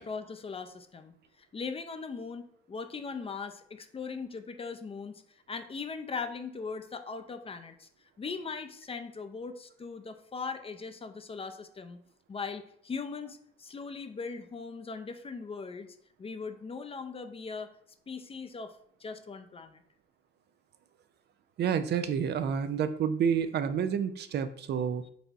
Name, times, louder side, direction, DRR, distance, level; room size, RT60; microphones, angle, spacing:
voice 1, 0.0-5.2 5.5-7.9 8.2-12.0 12.3-17.7 18.1-19.8 25.0-25.1, left 5 dB, 30° left, 8 dB, 0.5 m, -40 dB
voice 2, 21.6-25.0, right 7 dB, 55° right, 11 dB, 0.4 m, -29 dB
4.0 x 2.6 x 4.5 m, 0.66 s
cardioid pair, 90°, 20 cm